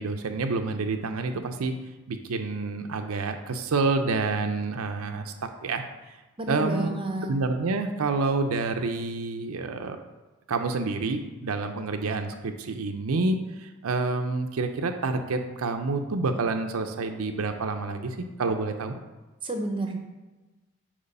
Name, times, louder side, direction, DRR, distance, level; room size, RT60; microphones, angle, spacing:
voice 1, 0.0-1.7 2.1-5.8 6.5-6.9 7.3-10.0 10.5-19.0, right 3 dB, 85° right, 6 dB, 0.5 m, -28 dB
voice 2, 6.4-7.3 19.4-20.0, right 1 dB, 25° right, 4 dB, 0.8 m, -30 dB
8.0 x 3.1 x 5.4 m, 1.2 s
head